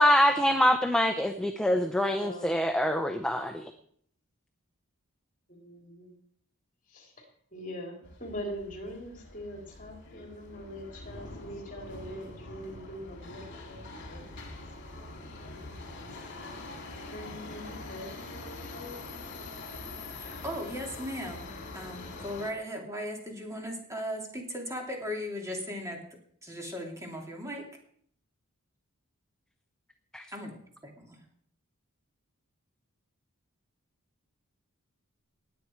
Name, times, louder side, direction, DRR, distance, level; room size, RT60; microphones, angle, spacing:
voice 1, 0.0-3.6 30.1-30.2, left 1 dB, 5° left, 0.7 m, -24 dB
voice 2, 2.1-2.7 3.5-3.6 5.5-6.2 6.9-14.4 15.2-16.2 16.6-19.4, equal, 40° left, 3.3 m, -43 dB
Subway metro underground, 8.0-22.5, left 2 dB, 55° left, 2.3 m, -44 dB
voice 3, 20.1-21.5 21.7-26.0 26.4-27.6 30.3-30.6 30.8-31.2, equal, 15° right, 2.8 m, -37 dB
19.5 x 8.6 x 4.6 m
head